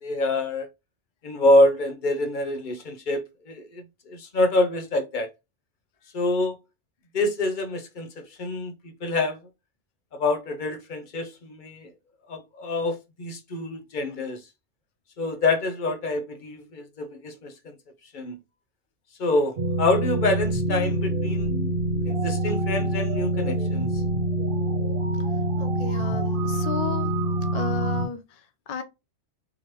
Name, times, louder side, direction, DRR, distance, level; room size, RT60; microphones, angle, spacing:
voice 1, 0.0-0.7 1.2-5.3 6.1-6.6 7.1-8.7 9.0-9.4 10.1-11.9 12.3-14.4 15.2-17.7 18.1-18.4 19.2-21.5 22.1-23.9, left 2 dB, 45° left, 0.8 m, -26 dB
sound 1, 19.6-28.1, right 1 dB, 55° right, 0.9 m, -25 dB
voice 2, 25.6-27.1 27.5-28.8, left 6 dB, 65° left, 0.3 m, -33 dB
3.7 x 2.9 x 3.0 m
omnidirectional pair, 1.2 m